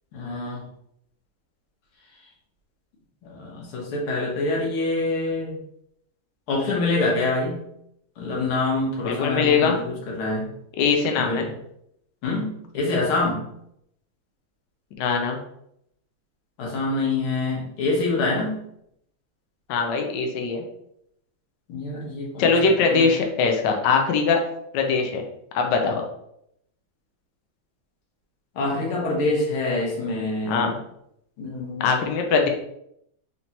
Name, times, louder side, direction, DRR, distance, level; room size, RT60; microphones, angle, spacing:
voice 1, 0.1-0.6 3.2-5.6 6.5-7.6 8.2-10.5 11.1-11.4 12.2-13.4 16.6-18.6 21.7-23.1 28.6-30.7 31.4-32.0, left 2 dB, 90° left, -2 dB, 1.9 m, -26 dB
voice 2, 9.0-9.8 10.8-11.5 15.0-15.4 19.7-20.6 22.4-24.4 24.7-25.2 25.5-26.0 30.4-30.7 31.8-32.5, left 5 dB, 70° left, 3 dB, 1.1 m, -21 dB
4.2 x 3.2 x 2.8 m, 0.74 s
omnidirectional pair, 2.3 m